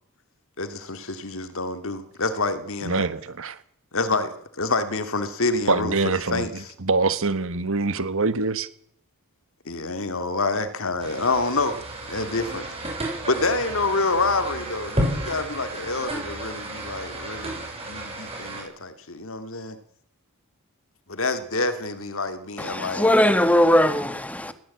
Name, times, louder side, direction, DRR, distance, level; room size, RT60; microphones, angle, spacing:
voice 1, 0.6-3.1 3.9-6.0 6.3-6.5 9.7-12.7 13.3-19.8 21.1-23.1, left 3 dB, 65° left, 2.3 m, -27 dB
voice 2, 2.8-3.6 5.7-8.7, right 3 dB, 65° right, 1.4 m, -24 dB
sound 1, 11.0-18.6, right 1 dB, 25° right, 6.9 m, -32 dB
voice 3, 22.6-24.5, left 1 dB, 5° left, 1.8 m, -19 dB
20.0 x 16.0 x 8.5 m
head